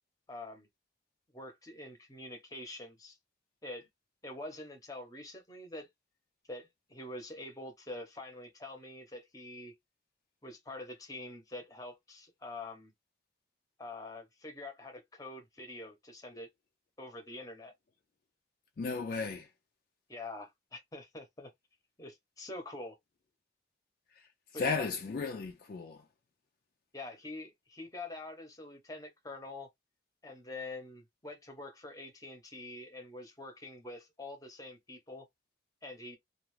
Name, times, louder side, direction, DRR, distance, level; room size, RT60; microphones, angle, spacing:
voice 1, 0.3-0.7 1.3-3.2 3.6-3.9 4.2-5.9 6.5-9.7 10.4-12.9 13.8-16.5 17.0-17.7 20.1-21.5 22.0-23.0 24.5-24.9 26.9-29.7 30.2-35.2 35.8-36.2, left 2 dB, 20° left, 0.8 m, -45 dB
voice 2, 18.8-19.5 24.1-26.1, left 4 dB, 50° left, 0.3 m, -35 dB
2.5 x 2.3 x 3.1 m
head